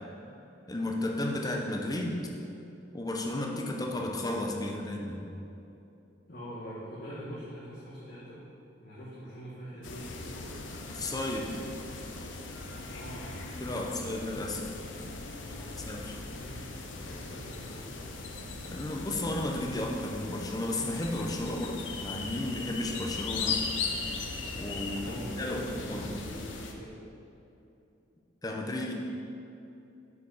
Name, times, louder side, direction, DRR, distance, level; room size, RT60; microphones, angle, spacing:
voice 1, 0.7-2.2 2.9-5.2 10.9-11.5 13.6-14.7 15.9-16.1 18.7-23.6 24.5-26.1 28.4-28.9, left 1 dB, 20° left, 1 dB, 0.7 m, -33 dB
voice 2, 6.3-8.5 8.8-10.6 12.9-14.2 15.4-15.8 16.3-17.9 24.9-26.9, equal, 55° left, -10 dB, 1.4 m, -45 dB
sound 1, 9.8-26.7, left 4 dB, 85° left, 0.7 m, -39 dB
6.8 x 4.7 x 4.8 m, 2.9 s
head